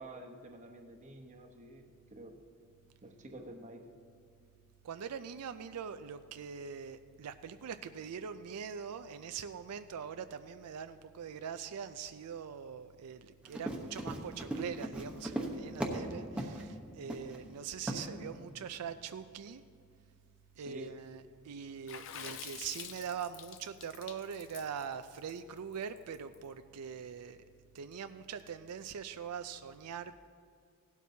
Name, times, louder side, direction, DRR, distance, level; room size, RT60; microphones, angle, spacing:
voice 1, 0.0-2.4 3.0-3.9 20.6-20.9, right 1 dB, 35° right, 3 dB, 1.0 m, -49 dB
voice 2, 4.8-19.6 20.6-27.4 27.7-30.2, right 7 dB, 85° right, 10 dB, 0.4 m, -43 dB
Run, 13.4-16.1 16.4-16.6 17.1-17.4 17.9-18.0, right 1 dB, 5° right, 1.0 m, -37 dB
Water / Splash splatter, 21.9-26.4, left 9 dB, 60° left, 0.5 m, -47 dB
16.5 x 12.0 x 2.8 m, 2.2 s
head